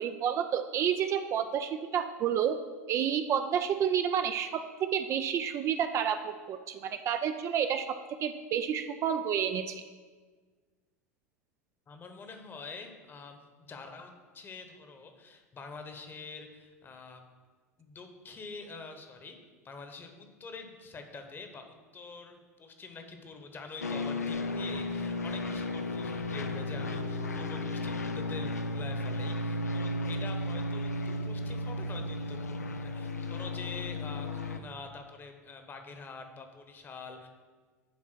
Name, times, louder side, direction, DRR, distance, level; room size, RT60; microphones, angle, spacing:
voice 1, 0.0-2.6 2.9-9.8, right 8 dB, 35° right, 8 dB, 0.4 m, -30 dB
voice 2, 11.9-13.4 13.7-17.3 17.8-19.4 19.6-37.3, left 4 dB, 25° left, 6 dB, 1.1 m, -46 dB
sound 1, 23.8-34.6, left 2 dB, 80° left, 0.5 m, -34 dB
10.5 x 4.0 x 6.1 m, 1.4 s
figure-of-eight pair, 80°, 9 cm